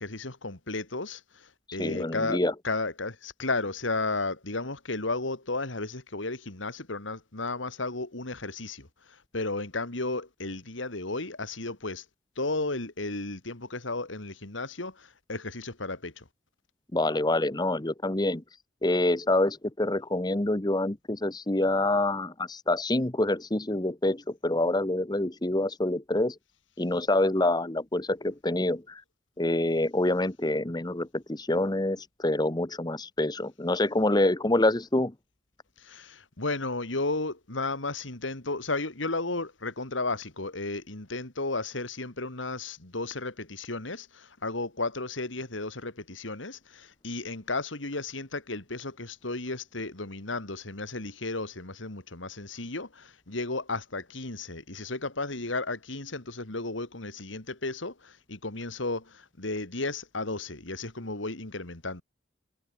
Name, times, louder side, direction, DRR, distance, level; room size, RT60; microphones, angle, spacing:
voice 1, 0.0-2.4 2.6-12.0 12.4-16.3 35.8-62.0, left 3 dB, 85° left, 2.9 m, -34 dB
voice 2, 1.7-2.5 16.9-18.4 18.8-26.4 26.8-29.0 29.4-35.1, left 1 dB, 20° left, 1.1 m, -26 dB
head